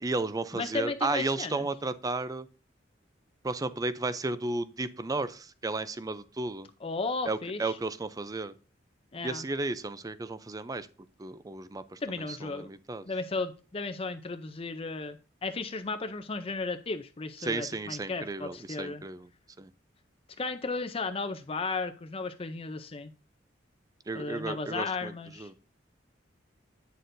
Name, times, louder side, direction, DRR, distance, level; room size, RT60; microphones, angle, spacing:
voice 1, 0.0-2.5 3.4-6.7 7.2-8.5 9.2-10.9 11.2-13.0 17.4-19.3 19.6-19.7 24.1-25.1 25.4-25.5, right 3 dB, 20° right, 14 dB, 0.4 m, -33 dB
voice 2, 0.5-1.7 6.8-7.8 9.1-9.4 12.0-12.7 13.1-19.0 20.4-23.1 24.1-25.5, left 3 dB, 30° left, 8 dB, 0.5 m, -35 dB
9.2 x 6.6 x 2.6 m, 0.35 s
head